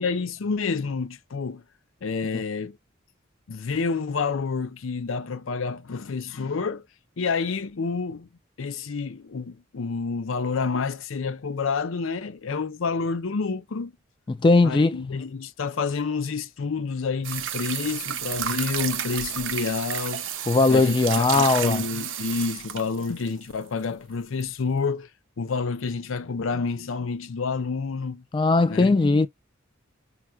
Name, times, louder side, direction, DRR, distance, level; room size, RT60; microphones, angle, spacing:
voice 1, 0.0-1.6 2.0-2.8 3.5-6.8 7.2-8.3 8.6-13.9 14.6-20.3 20.7-25.1 25.4-28.2 28.7-29.0, left 4 dB, 80° left, 0.5 m, -29 dB
voice 2, 14.3-15.0 20.5-21.8 28.3-29.3, left 3 dB, 25° left, 0.3 m, -19 dB
sound 1, 17.2-23.4 24.4-24.5, right 10 dB, 70° right, 0.7 m, -31 dB
5.7 x 2.2 x 2.3 m
head